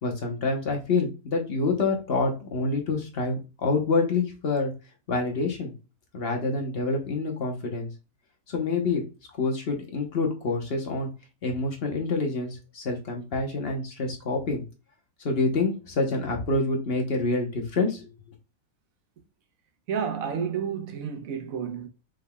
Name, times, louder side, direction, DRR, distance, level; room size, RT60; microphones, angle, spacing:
voice 1, 0.0-4.7 5.1-5.7 6.1-7.9 8.5-9.0 9.4-11.1 11.4-14.6 15.2-18.1, left 3 dB, 45° left, 1.1 m, -27 dB
voice 2, 19.9-21.9, right 7 dB, 70° right, 1.2 m, -30 dB
5.4 x 3.5 x 2.3 m
omnidirectional pair, 1.6 m